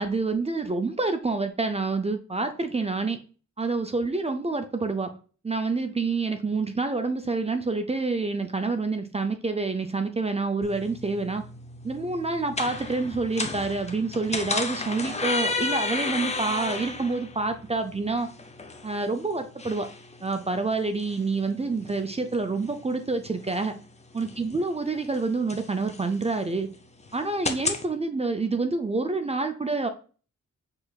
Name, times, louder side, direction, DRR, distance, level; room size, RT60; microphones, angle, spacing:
voice 1, 0.0-3.2 3.6-5.1 5.4-11.4 11.8-18.3 18.8-19.9 20.2-23.8 24.1-26.7 27.1-29.9, right 3 dB, 20° right, 7 dB, 0.5 m, -27 dB
sound 1, 10.6-27.8, left 3 dB, 25° left, 0.6 m, -34 dB
6.4 x 3.2 x 2.3 m, 0.38 s
wide cardioid pair, 90°, 29 cm